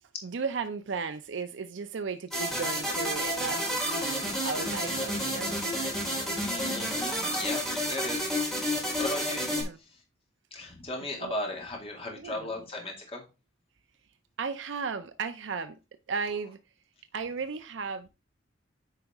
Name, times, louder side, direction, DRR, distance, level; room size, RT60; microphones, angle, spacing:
voice 1, 0.2-5.6 9.5-9.8 11.2-11.3 12.2-12.5 14.4-15.8 16.1-16.6 17.1-18.1, right 5 dB, 75° right, 0.5 m, -35 dB
sound 1, 2.3-9.6, equal, ahead, 3.3 m, -30 dB
voice 2, 6.4-8.2 8.6-9.5 10.5-13.2, left 2 dB, 30° left, 2.2 m, -36 dB
9.1 x 4.8 x 3.5 m
head